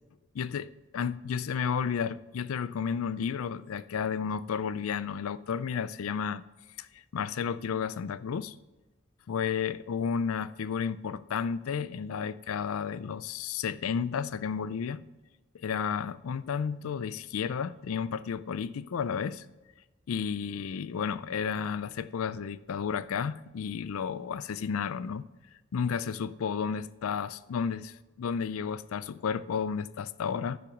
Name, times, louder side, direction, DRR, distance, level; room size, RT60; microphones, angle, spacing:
voice 1, 0.3-6.4 6.8-8.5 9.3-15.0 15.5-19.5 20.1-25.3 25.7-30.6, left 6 dB, 80° left, 0.4 m, -32 dB
10.0 x 6.1 x 5.9 m
head